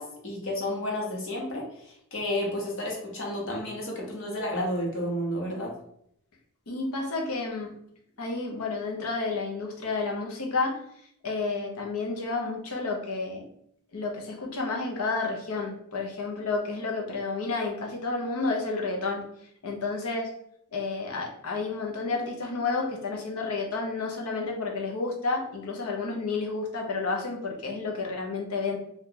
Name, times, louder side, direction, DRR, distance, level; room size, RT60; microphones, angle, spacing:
voice 1, 0.0-1.6 2.1-5.7, left 1 dB, 60° left, -2 dB, 1.0 m, -31 dB
voice 2, 6.7-7.7 8.2-10.8 11.2-13.4 13.9-19.2 19.6-20.3 20.7-28.8, left 3 dB, 80° left, 1 dB, 0.8 m, -30 dB
2.8 x 2.4 x 3.8 m, 0.71 s
head